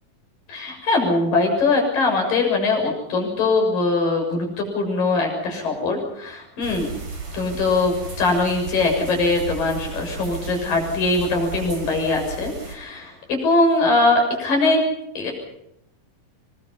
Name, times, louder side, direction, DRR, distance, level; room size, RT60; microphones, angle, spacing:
voice 1, 0.5-6.9 7.3-14.8 15.1-15.3, left 3 dB, 75° left, 2 dB, 8.5 m, -21 dB
sound 1, 6.6-12.7, right 4 dB, 60° right, 7.4 m, -34 dB
27.5 x 23.0 x 5.7 m, 0.77 s
omnidirectional pair, 3.9 m